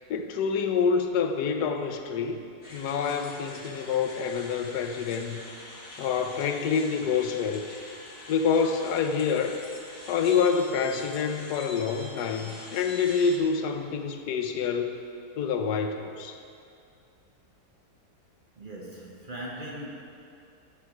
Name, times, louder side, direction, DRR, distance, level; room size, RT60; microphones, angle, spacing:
voice 1, 0.1-2.4 2.7-5.4 6.0-7.6 8.3-9.6 10.1-15.0 15.4-16.4, left 6 dB, 85° left, 6 dB, 1.2 m, -27 dB
sound 1, 2.6-13.4, left 2 dB, 25° left, 0.8 m, -45 dB
voice 2, 18.6-19.9, right 1 dB, 40° right, -3 dB, 0.9 m, -39 dB
12.0 x 4.6 x 4.8 m, 2.4 s
omnidirectional pair, 1.7 m